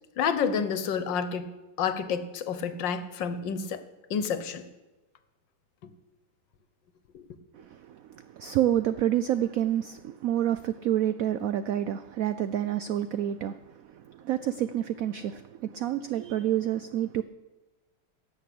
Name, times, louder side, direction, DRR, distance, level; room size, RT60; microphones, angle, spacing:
voice 1, 0.2-1.5 1.8-3.8 4.1-4.6 7.1-7.3, left 6 dB, 70° left, 1.6 m, -29 dB
voice 2, 7.5-17.2, right 11 dB, 90° right, 0.7 m, -28 dB
17.0 x 6.8 x 8.5 m
omnidirectional pair, 2.1 m